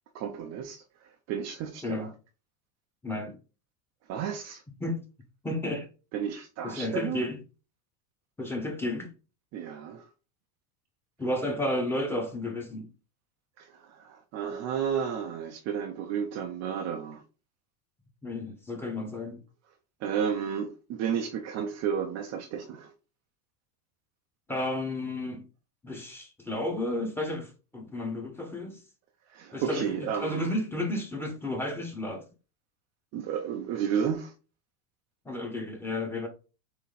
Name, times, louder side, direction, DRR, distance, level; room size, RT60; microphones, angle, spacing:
voice 1, 0.1-0.8 1.3-2.1 4.1-4.6 6.1-7.2 9.5-10.0 13.6-17.2 20.0-22.9 29.3-30.6 33.1-34.3, right 8 dB, 35° right, 0.7 m, -32 dB
voice 2, 3.0-3.4 4.8-5.0 5.4-5.9 6.6-7.4 8.4-9.1 11.2-12.9 18.2-19.4 24.5-25.4 25.8-28.8 29.5-32.2 35.2-36.3, left 1 dB, 5° left, 1.2 m, -32 dB
8.3 x 3.0 x 4.1 m
supercardioid pair, 155°, 47 cm